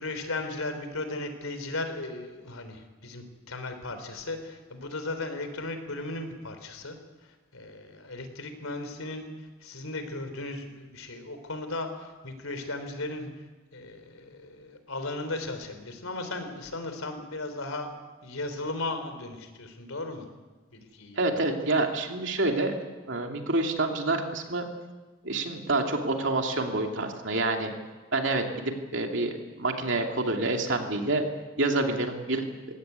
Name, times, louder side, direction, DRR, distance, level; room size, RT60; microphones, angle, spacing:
voice 1, 0.0-7.0 7.5-9.3 9.6-13.3 13.7-17.9 18.2-20.2 20.7-21.2, left 2 dB, 90° left, 8 dB, 3.7 m, -36 dB
voice 2, 21.2-22.7 23.1-24.6 25.2-27.7 28.1-31.2 31.6-32.4, right 2 dB, 60° right, 3 dB, 2.8 m, -27 dB
21.5 x 17.0 x 9.5 m, 1.3 s
head